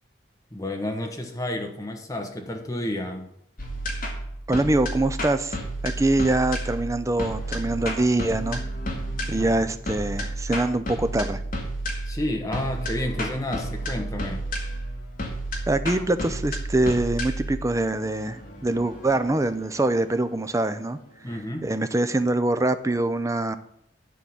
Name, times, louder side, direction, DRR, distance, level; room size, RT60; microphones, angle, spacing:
voice 1, 0.5-3.3 9.3-9.6 12.1-14.4 21.2-21.7, left 1 dB, 15° left, 3 dB, 1.2 m, -31 dB
sound 1, 3.6-20.7, right 1 dB, 45° left, 2.0 m, -32 dB
voice 2, 4.5-5.6 5.8-8.6 9.3-11.4 15.7-21.0 21.6-23.6, right 2 dB, 15° right, 11 dB, 0.5 m, -24 dB
11.0 x 3.8 x 7.1 m, 0.75 s
head